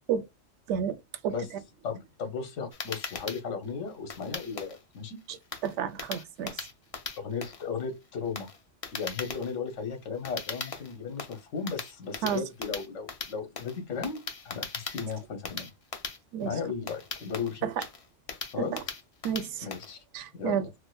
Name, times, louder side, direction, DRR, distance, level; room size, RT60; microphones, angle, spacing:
voice 1, 1.8-5.2 7.2-8.5 8.9-15.7 16.4-17.7 18.5-18.7 19.6-20.0 20.4-20.6, left 5 dB, 70° left, 1.3 m, -35 dB
sound 1, 2.7-20.0, left 4 dB, 40° left, 0.5 m, -39 dB
voice 2, 5.6-6.7 12.2-12.4 16.3-16.5 17.6-17.8 18.7-18.8 19.2-19.7 20.1-20.7, right 8 dB, 70° right, 0.9 m, -30 dB
4.9 x 2.1 x 2.2 m
omnidirectional pair, 1.3 m